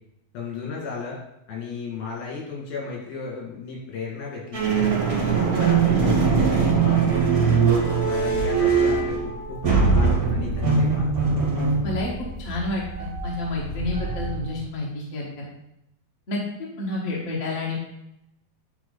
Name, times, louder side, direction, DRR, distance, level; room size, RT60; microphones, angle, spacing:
voice 1, 0.3-1.2 1.5-4.7 5.2-7.1 8.1-11.1, left 5 dB, 75° left, -3 dB, 4.0 m, -34 dB
sound 1, 4.5-14.6, right 5 dB, 50° right, 1.0 m, -22 dB
voice 2, 11.8-15.5 16.3-16.4 16.8-17.7, left 2 dB, 40° left, -4 dB, 1.0 m, -29 dB
9.5 x 4.3 x 3.9 m, 0.83 s
omnidirectional pair, 4.3 m